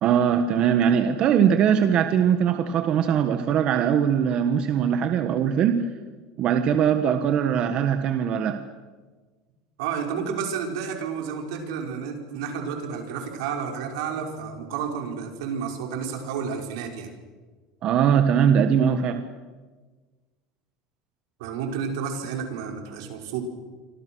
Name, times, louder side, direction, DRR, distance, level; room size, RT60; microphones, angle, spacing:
voice 1, 0.0-5.9 6.4-8.6 17.8-19.2, right 8 dB, 45° right, 8 dB, 1.5 m, -21 dB
voice 2, 9.8-17.1 21.4-23.4, right 6 dB, 80° right, 3 dB, 5.5 m, -31 dB
28.5 x 25.5 x 6.4 m, 1.4 s
supercardioid pair, 135°, 2 cm